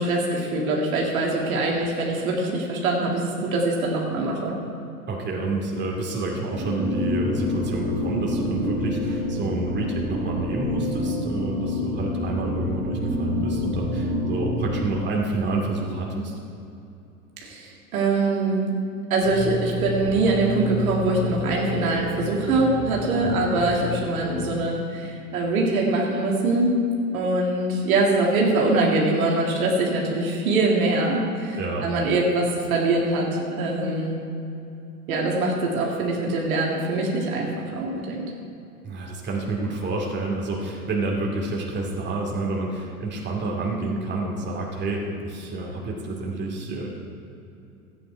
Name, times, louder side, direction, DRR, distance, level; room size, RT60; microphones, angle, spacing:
voice 1, 0.0-4.6 17.4-18.7 19.1-26.7 27.1-34.2 35.1-38.3, right 2 dB, 65° right, -2 dB, 2.2 m, -23 dB
voice 2, 5.1-16.3 23.2-23.4 31.6-31.9 38.8-46.9, right 2 dB, 25° right, -1 dB, 2.4 m, -29 dB
sound 1, 6.5-14.8, left 1 dB, 50° right, 3.1 m, -27 dB
sound 2, 19.2-25.2, left 3 dB, 60° left, 1.7 m, -32 dB
14.0 x 9.3 x 4.6 m, 2.8 s
hypercardioid pair, 90°, 45 cm